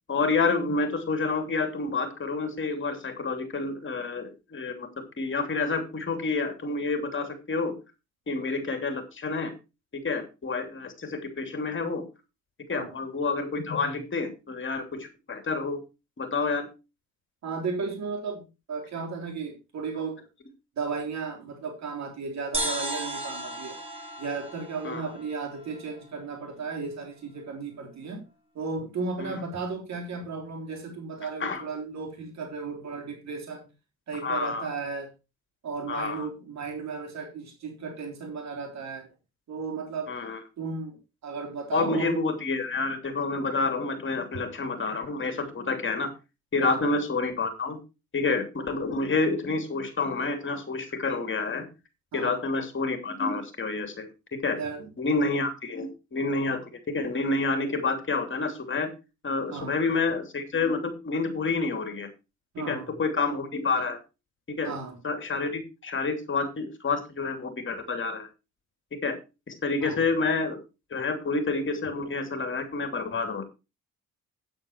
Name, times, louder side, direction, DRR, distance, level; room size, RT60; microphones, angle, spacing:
voice 1, 0.1-4.9 5.2-7.7 8.3-9.5 9.9-12.0 12.7-15.8 16.2-16.7 24.8-25.0 29.2-29.4 31.4-31.6 34.2-34.7 35.9-36.3 40.1-40.4 41.7-46.1 46.5-47.8 48.1-51.6 52.1-54.6 55.0-56.6 56.9-58.9 59.2-62.1 62.7-64.0 64.5-64.8 65.0-68.3 69.0-69.2 69.5-70.6 70.9-73.4, left 3 dB, 40° left, 3.0 m, -28 dB
voice 2, 17.4-20.2 20.8-23.8 24.2-28.2 28.6-33.7 34.1-35.1 35.6-39.1 39.5-40.1 40.6-41.0 41.2-42.2 46.6-46.9 52.1-52.4 54.6-54.9 59.5-59.8 62.5-62.9 64.6-65.0 69.8-70.0, right 4 dB, 65° right, 3.6 m, -34 dB
sound 1, 22.5-26.1, right 1 dB, 20° right, 5.7 m, -35 dB
9.0 x 8.8 x 4.7 m
cardioid pair, 90°, 30 cm